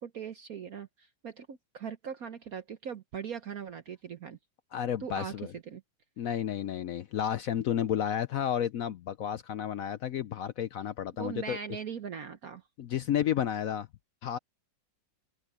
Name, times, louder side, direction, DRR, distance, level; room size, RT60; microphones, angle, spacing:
voice 1, 0.0-4.4 5.0-5.8 11.2-12.6, right 7 dB, 55° right, 1.3 m, -40 dB
voice 2, 4.7-5.5 6.2-11.6 12.8-13.9 14.2-14.4, left 9 dB, 70° left, 0.8 m, -31 dB
open air
omnidirectional pair, 2.0 m